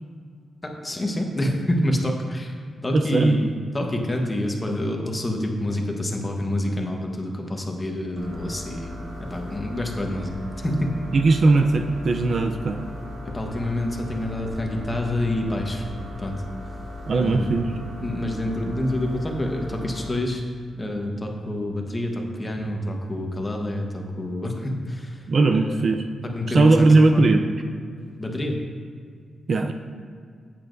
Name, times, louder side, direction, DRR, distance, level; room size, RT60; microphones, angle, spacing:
voice 1, 0.6-2.5 2.8-10.9 13.2-15.8 16.2-16.4 17.2-17.6 18.0-20.4 20.8-25.2 25.5-25.9 26.2-26.8 27.1-27.3 28.2-28.6, left 1 dB, 20° left, 1 dB, 1.2 m, -27 dB
voice 2, 2.9-3.4 11.1-12.8 17.1-17.7 25.3-26.0 26.5-27.4 29.5-29.7, right 3 dB, 50° right, 6 dB, 0.5 m, -18 dB
sound 1, 8.2-20.1, left 1 dB, 80° right, 2.1 m, -37 dB
12.0 x 8.7 x 2.6 m, 2.1 s
cardioid pair, 105°, 0 cm